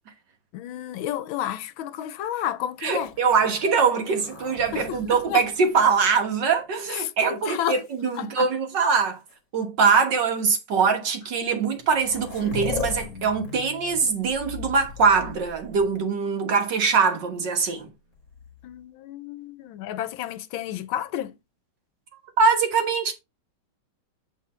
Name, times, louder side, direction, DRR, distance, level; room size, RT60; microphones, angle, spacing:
voice 1, 0.5-3.1 4.7-5.4 6.9-7.8 8.2-8.5 18.6-21.3, left 11 dB, 80° left, 1.4 m, -31 dB
voice 2, 2.8-9.2 9.5-17.9 22.4-23.1, right 5 dB, 60° right, 2.0 m, -23 dB
sound 1, 2.9-6.8 7.5-8.2 9.3-9.4 10.1-10.3 11.4-11.5 11.7-16.2 18.1-18.8, left 5 dB, 45° left, 1.5 m, -39 dB
8.3 x 4.1 x 4.3 m
omnidirectional pair, 2.2 m